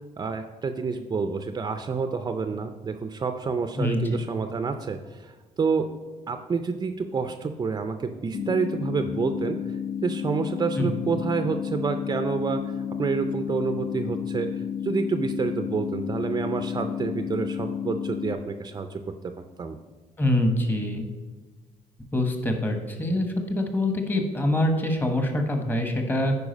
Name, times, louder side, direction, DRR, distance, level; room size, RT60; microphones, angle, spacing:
voice 1, 0.2-5.3 5.6-5.9 6.3-9.6 10.0-12.6 13.0-19.3 19.6-19.8, right 5 dB, 30° right, 8 dB, 0.5 m, -28 dB
voice 2, 3.8-4.2 10.8-11.0 20.2-21.0 22.1-26.3, left 1 dB, 15° left, 5 dB, 1.2 m, -25 dB
sound 1, 8.3-18.3, left 8 dB, 70° left, 0.7 m, -31 dB
9.7 x 4.8 x 5.2 m, 1.3 s
cardioid pair, 115°, 13 cm